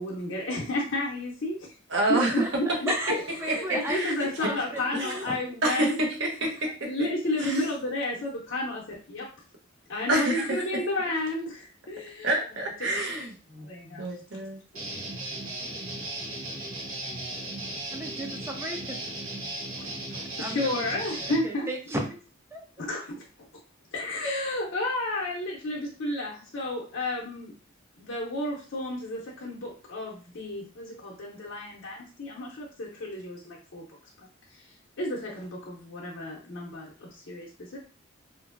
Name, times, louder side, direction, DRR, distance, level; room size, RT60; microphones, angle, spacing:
voice 1, 0.0-1.7 2.1-6.0 6.4-6.5 6.8-9.2 9.9-12.4 12.8-12.9 13.6-14.4 19.8-21.7 22.8-23.2 23.9-27.5 28.0-33.8 34.2-34.7 35.0-37.8, left 1 dB, 65° left, -4 dB, 0.6 m, -32 dB
voice 2, 1.9-2.4 3.5-3.6 3.9-4.1 4.9-5.1 5.6-6.7 7.4-7.6 10.1-10.5 12.2-13.7 14.0-14.6, right 1 dB, 60° right, 0 dB, 0.8 m, -27 dB
voice 3, 2.9-5.4 17.9-19.1 20.4-20.8 21.4-22.2 22.5-22.6, equal, 10° right, 3 dB, 0.4 m, -35 dB
Guitar, 14.7-21.4, right 2 dB, 85° right, 1.0 m, -36 dB
2.9 x 2.6 x 2.5 m, 0.37 s
head